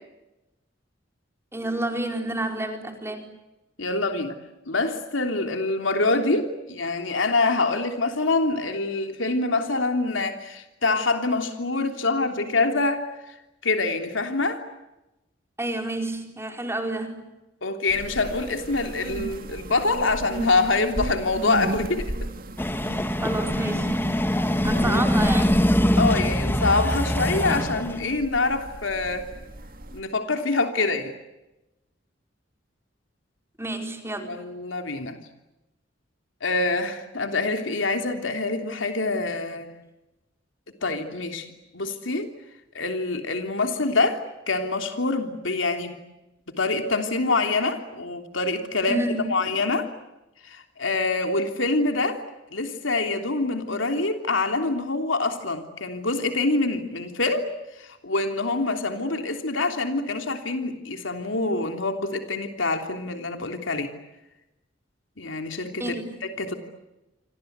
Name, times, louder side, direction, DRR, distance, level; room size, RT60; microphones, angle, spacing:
voice 1, 1.5-3.3 15.6-17.2 23.2-24.0 24.6-25.5 33.6-34.4 40.8-40.9 48.9-49.3 65.8-66.0, right 1 dB, 15° right, 4 dB, 4.4 m, -29 dB
voice 2, 3.8-4.4 4.7-13.0 13.6-14.6 17.6-22.1 24.7-25.0 26.0-29.3 29.9-31.1 34.2-35.2 36.4-39.7 40.8-41.5 41.7-42.3 42.7-44.2 44.5-46.0 46.6-49.0 49.3-49.9 50.4-52.2 52.5-57.5 57.8-63.9 65.2-65.9 66.4-66.5, left 3 dB, 90° left, 5 dB, 3.2 m, -25 dB
sound 1, 17.9-30.0, right 1 dB, 50° right, 2.3 m, -36 dB
sound 2, 22.6-28.0, equal, 10° left, 1.3 m, -23 dB
29.0 x 25.5 x 8.1 m, 0.99 s
head